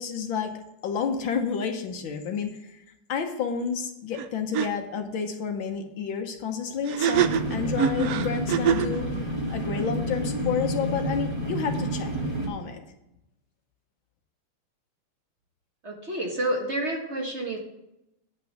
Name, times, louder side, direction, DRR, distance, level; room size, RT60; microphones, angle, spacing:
voice 1, 0.0-2.8 3.1-9.1 9.5-12.1 12.5-12.8, left 6 dB, 70° left, 5 dB, 1.7 m, -30 dB
sound 1, 4.2-4.3 4.5-4.7 6.9-9.0, right 9 dB, 80° right, 0.8 m, -24 dB
sound 2, 7.1-12.5, right 1 dB, 20° right, 1.6 m, -29 dB
voice 2, 15.8-17.6, right 1 dB, 35° right, 1 dB, 1.5 m, -29 dB
9.3 x 5.9 x 6.4 m, 0.87 s
omnidirectional pair, 2.4 m